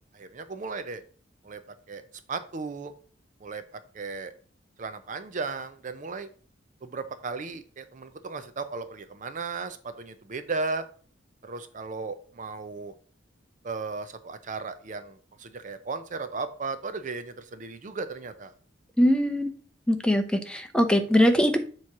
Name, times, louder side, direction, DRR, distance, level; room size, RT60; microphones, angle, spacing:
voice 1, 0.1-1.0 1.4-1.6 1.9-2.0 2.3-2.9 3.4-4.3 4.8-6.3 6.8-10.8 11.4-12.9 13.6-18.5, right 4 dB, 40° right, 10 dB, 0.5 m, -35 dB
voice 2, 19.0-19.5 19.9-21.6, equal, 5° left, 6 dB, 0.7 m, -22 dB
7.1 x 3.1 x 5.9 m, 0.43 s
head